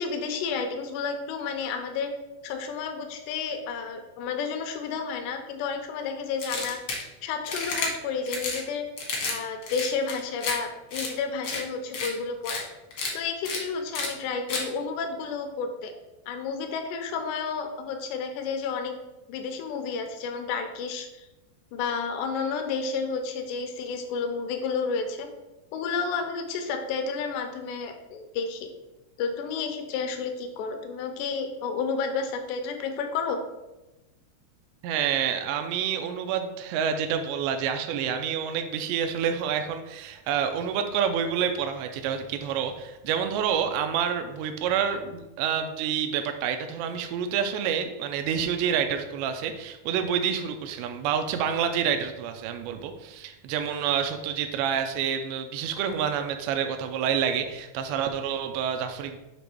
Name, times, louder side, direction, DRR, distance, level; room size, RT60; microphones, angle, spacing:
voice 1, 0.0-2.1 2.4-6.8 7.2-8.9 9.3-12.7 13.1-15.9 16.3-19.0 19.3-21.3 21.7-25.3 25.7-28.7 29.2-33.4, left 5 dB, 85° left, 5 dB, 2.8 m, -31 dB
sound 1, 6.4-7.0 7.4-7.9 8.3-8.6 9.0-9.4 9.6-10.5 10.9-11.1 11.4-11.6 11.9-12.1 12.4-12.6 12.9-13.1 13.4-13.6 13.9-14.1 14.5-14.6, left 3 dB, 70° left, 1.3 m, -31 dB
voice 2, 34.8-59.2, right 8 dB, 90° right, 7 dB, 2.8 m, -28 dB
7.7 x 3.0 x 5.8 m, 1.0 s
omnidirectional pair, 4.9 m